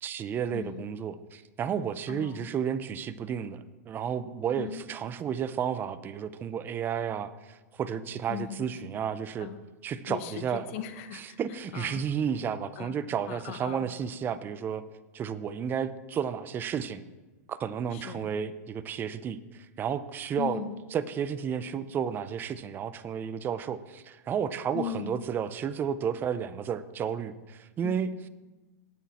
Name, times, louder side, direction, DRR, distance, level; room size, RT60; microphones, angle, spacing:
voice 1, 0.0-9.5 9.8-10.7 11.1-14.8 15.1-17.0 17.5-20.6 20.9-28.3, right 8 dB, 25° right, 14 dB, 0.5 m, -32 dB
voice 2, 0.5-0.9 2.1-2.5 4.6-4.8 8.3-8.6 9.4-9.6 10.1-11.4 11.7-12.0 12.8-13.0 13.3-13.8 17.9-18.3 20.3-20.8 24.7-25.2 27.8-27.9, left 10 dB, 55° left, 9 dB, 1.1 m, -38 dB
17.5 x 6.2 x 4.2 m, 1.2 s
hypercardioid pair, 130°, 9 cm